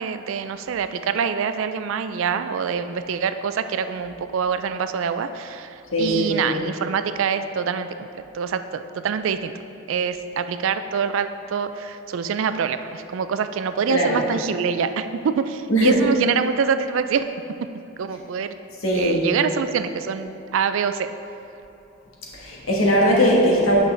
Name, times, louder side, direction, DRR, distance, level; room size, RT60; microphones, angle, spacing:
voice 1, 0.0-7.9 8.3-9.5 9.9-15.1 15.4-17.3 18.0-18.6 18.9-21.1, right 6 dB, 70° right, 10 dB, 0.3 m, -25 dB
voice 2, 5.9-6.5 13.9-14.2 15.7-16.0 18.8-19.2 22.3-23.8, equal, 80° left, -3 dB, 1.3 m, -19 dB
8.5 x 5.2 x 3.3 m, 2.8 s
head